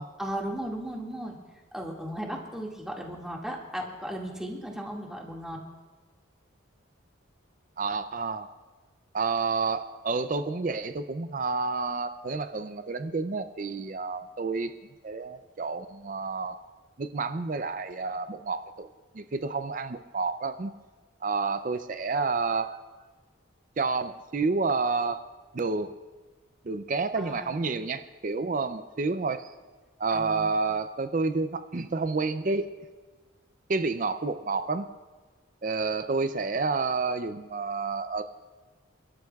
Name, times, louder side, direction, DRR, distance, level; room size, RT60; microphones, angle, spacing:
voice 1, 0.2-1.4 1.7-5.6 27.2-27.7 30.1-30.6, equal, 5° right, -2 dB, 2.0 m, -36 dB
voice 2, 7.8-8.5 9.1-14.7 15.0-16.6 17.0-18.9 19.1-20.7 21.2-22.8 23.8-25.2 25.5-26.0 26.6-29.5 30.0-32.7 33.7-34.9 35.6-38.2, right 4 dB, 40° right, 10 dB, 0.4 m, -29 dB
29.5 x 13.0 x 2.4 m, 1.4 s
head